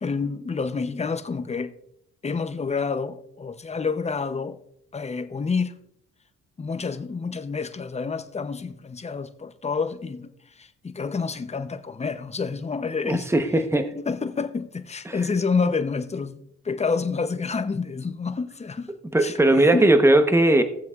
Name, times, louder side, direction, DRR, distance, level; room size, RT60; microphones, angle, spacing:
voice 1, 0.0-1.7 2.2-4.6 4.9-5.7 6.6-13.3 14.0-18.9 19.2-19.9, left 5 dB, 20° left, 0.7 m, -28 dB
voice 2, 13.0-13.9 15.1-15.2 19.1-20.6, right 1 dB, 10° right, 1.0 m, -18 dB
17.0 x 7.6 x 2.4 m
cardioid pair, 90°, 30 cm